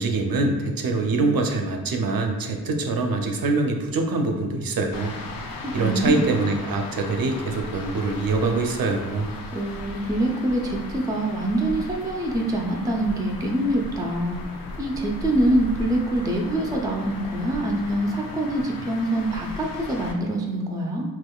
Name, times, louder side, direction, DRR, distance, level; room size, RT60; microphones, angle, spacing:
voice 1, 0.0-5.2 5.7-9.3, right 3 dB, 65° right, 4 dB, 0.5 m, -24 dB
sound 1, 4.9-20.1, left 2 dB, 65° left, 0.5 m, -37 dB
voice 2, 5.8-6.3 9.5-14.4 14.8-21.0, right 1 dB, 10° right, 1 dB, 0.3 m, -25 dB
3.6 x 2.9 x 2.3 m, 1.3 s
wide cardioid pair, 130°, 37 cm